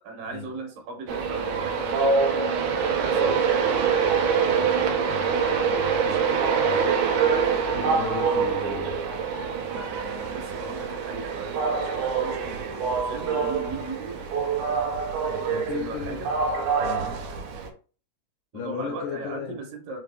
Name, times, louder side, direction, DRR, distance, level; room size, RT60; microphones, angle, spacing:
voice 1, 0.0-4.1 5.0-6.9 9.7-14.3 15.2-16.3 17.0-17.2 18.5-20.0, right 3 dB, 75° right, 3 dB, 2.3 m, -39 dB
Train, 1.1-17.7, right 5 dB, 90° right, 1.7 m, -25 dB
voice 2, 4.4-5.0 7.7-8.9 15.5-16.3 16.8-17.1 18.5-19.6, left 7 dB, 85° left, 2 dB, 1.9 m, -35 dB
5.8 x 2.2 x 3.3 m, 0.37 s
omnidirectional pair, 4.3 m